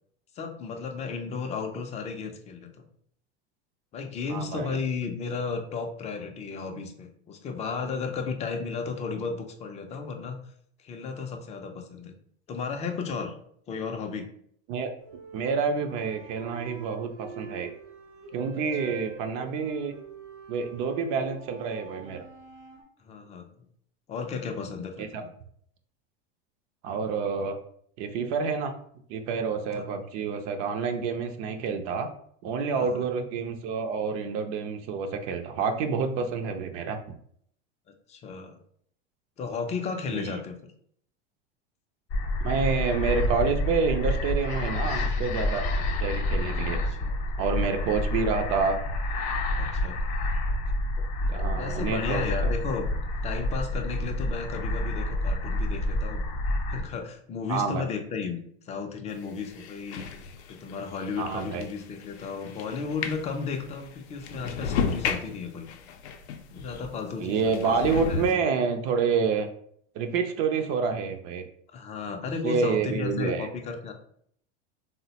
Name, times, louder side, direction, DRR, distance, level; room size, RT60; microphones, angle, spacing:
voice 1, 0.4-2.9 3.9-10.4 10.8-12.1 12.5-13.4 13.7-14.3 18.5-18.9 23.0-23.5 24.1-25.3 29.7-29.9 32.7-33.1 38.1-38.6 39.4-40.6 46.6-47.2 49.6-50.0 51.3-52.8 53.2-56.2 56.7-60.0 60.5-65.7 66.5-68.4 71.7-73.9, left 5 dB, 20° left, 5 dB, 0.3 m, -34 dB
voice 2, 4.3-4.8 14.7-14.9 15.3-17.7 18.3-19.9 20.5-22.2 25.0-25.2 26.8-27.6 28.0-28.7 29.1-32.1 32.4-37.0 40.1-40.3 42.4-45.7 46.0-46.8 47.4-48.8 51.3-52.5 57.5-57.8 61.2-61.7 67.2-69.5 70.0-71.4 72.4-73.5, right 5 dB, 45° right, 6 dB, 0.4 m, -28 dB
sound 1, 15.0-22.8, right 5 dB, 75° right, 0.9 m, -45 dB
sound 2, 42.1-56.8, left 1 dB, 45° left, 0.8 m, -28 dB
sound 3, 59.1-67.0 67.4-68.3, left 6 dB, 80° left, 0.5 m, -34 dB
3.5 x 2.1 x 2.7 m, 0.65 s
hypercardioid pair, 110°, 33 cm